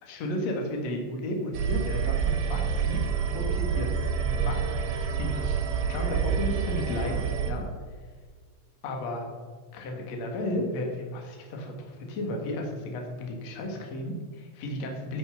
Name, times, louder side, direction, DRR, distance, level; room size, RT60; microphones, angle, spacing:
voice 1, 0.0-4.0 4.2-7.2 7.5-7.7 8.8-9.3 9.7-15.2, left 1 dB, 55° left, 2 dB, 1.9 m, -34 dB
sound 1, 1.5-7.5, right 6 dB, 60° right, 2.3 m, -28 dB
9.0 x 8.4 x 6.9 m, 1.5 s
omnidirectional pair, 5.7 m